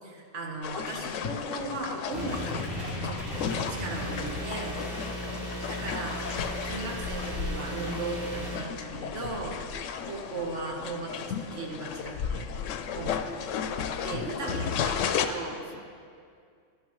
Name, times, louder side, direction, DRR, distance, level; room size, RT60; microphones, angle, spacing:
voice 1, 0.0-4.8 5.7-9.6 10.0-12.5 12.9-13.4 14.0-15.6, right 2 dB, 70° right, -1 dB, 1.6 m, -37 dB
sound 1, 0.6-15.3, left 7 dB, 85° left, 0.9 m, -34 dB
sound 2, 2.1-8.6, equal, 40° right, 3.3 m, -36 dB
voice 2, 9.7-10.2 14.0-14.8 15.5-15.8, left 2 dB, 55° left, 6 dB, 0.8 m, -49 dB
12.0 x 11.0 x 3.1 m, 2.2 s
omnidirectional pair, 1.3 m